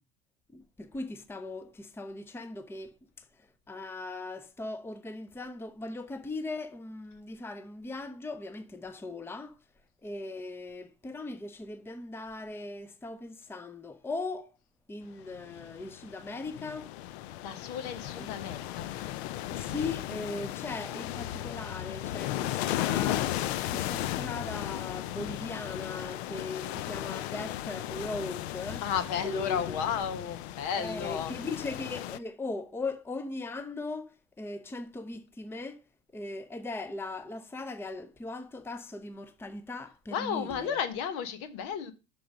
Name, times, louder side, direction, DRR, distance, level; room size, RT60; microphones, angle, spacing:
voice 1, 0.5-9.6 10.0-14.5 14.9-16.9 18.1-18.3 19.5-28.8 29.2-29.6 30.7-35.8 36.1-40.8, left 2 dB, 5° left, 0.6 m, -39 dB
sound 1, 15.3-32.2, left 13 dB, 85° left, 0.5 m, -35 dB
voice 2, 17.4-18.9 28.8-31.3 40.1-41.9, left 8 dB, 70° left, 1.3 m, -33 dB
6.0 x 4.6 x 6.5 m
supercardioid pair, 90°, 31 cm